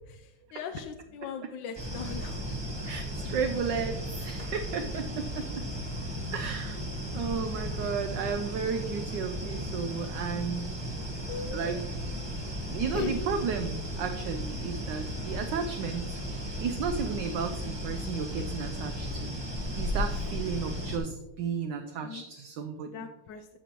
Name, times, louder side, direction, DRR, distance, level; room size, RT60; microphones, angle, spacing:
voice 1, 0.5-2.4 7.5-8.0 11.1-11.8 12.9-13.2 22.0-22.2 22.8-23.6, left 7 dB, 75° left, 7 dB, 1.1 m, -39 dB
sound 1, 1.8-21.0, equal, 25° right, 0.6 m, -35 dB
voice 2, 2.9-5.6 6.3-10.7 11.5-11.9 12.7-19.4 19.8-23.1, right 6 dB, 75° right, 7 dB, 1.1 m, -34 dB
13.5 x 5.2 x 2.9 m, 0.98 s
omnidirectional pair, 2.3 m